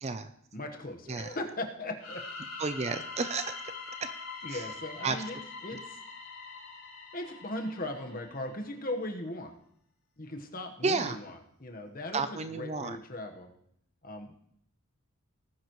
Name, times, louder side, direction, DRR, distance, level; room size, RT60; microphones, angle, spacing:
voice 1, 0.0-0.3 1.1-1.3 2.6-3.5 4.0-4.1 4.5-4.6 5.0-5.2 10.8-11.2 12.1-13.0, right 4 dB, 30° right, 10 dB, 0.5 m, -31 dB
voice 2, 0.5-2.2 4.4-6.0 7.1-9.5 10.2-13.5 14.0-14.3, left 1 dB, 40° left, 4 dB, 1.3 m, -38 dB
sound 1, 2.0-8.7, left 4 dB, 85° left, 4.4 m, -43 dB
18.5 x 9.9 x 3.1 m, 0.67 s
head